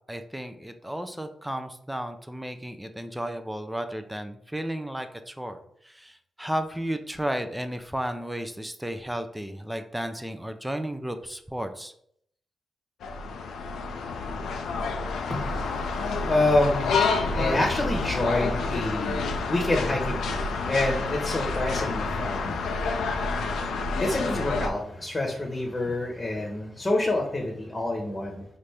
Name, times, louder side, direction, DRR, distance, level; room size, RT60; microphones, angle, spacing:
voice 1, 0.1-5.6 5.8-11.9, right 1 dB, 5° right, 8 dB, 0.5 m, -33 dB
sound 1, 13.0-24.7, left 4 dB, 80° left, 0.4 m, -28 dB
voice 2, 15.3-28.4, left 2 dB, 30° left, 0 dB, 1.0 m, -28 dB
4.2 x 2.5 x 3.3 m, 0.68 s
supercardioid pair, 40°, 0 cm